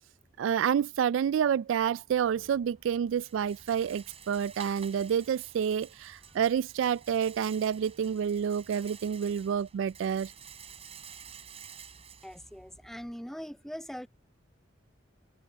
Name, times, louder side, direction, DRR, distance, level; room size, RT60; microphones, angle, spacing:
voice 1, 0.4-10.3, right 8 dB, 85° right, 0.3 m, -29 dB
Rattle, 2.1-13.1, right 7 dB, 35° right, 4.8 m, -51 dB
voice 2, 12.2-14.1, equal, ahead, 0.5 m, -41 dB
head